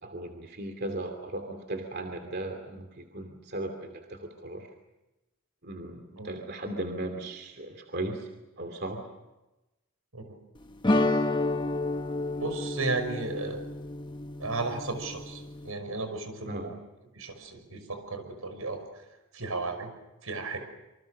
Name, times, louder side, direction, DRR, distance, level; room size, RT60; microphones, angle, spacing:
voice 1, 0.0-4.7 5.6-8.3 8.6-9.0 16.4-16.7, right 2 dB, 50° right, 5 dB, 2.7 m, -37 dB
sound 1, 10.8-15.7, left 2 dB, 20° left, 1.1 m, -30 dB
voice 2, 12.4-13.7 14.4-16.7 17.1-19.0 19.3-19.9 20.2-20.6, right 3 dB, 85° right, 7 dB, 5.7 m, -34 dB
28.0 x 25.0 x 6.6 m, 1.0 s
head